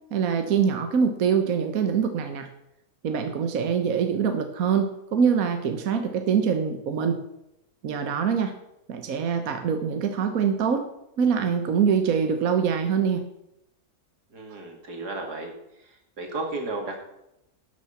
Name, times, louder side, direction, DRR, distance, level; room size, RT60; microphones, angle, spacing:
voice 1, 0.1-2.5 3.0-7.2 7.8-8.5 8.9-10.9 11.2-13.2, right 6 dB, 65° right, 6 dB, 1.4 m, -24 dB
voice 2, 14.3-15.5 16.2-17.0, right 2 dB, 90° right, 2 dB, 2.8 m, -33 dB
12.0 x 6.6 x 7.1 m, 0.84 s
omnidirectional pair, 1.7 m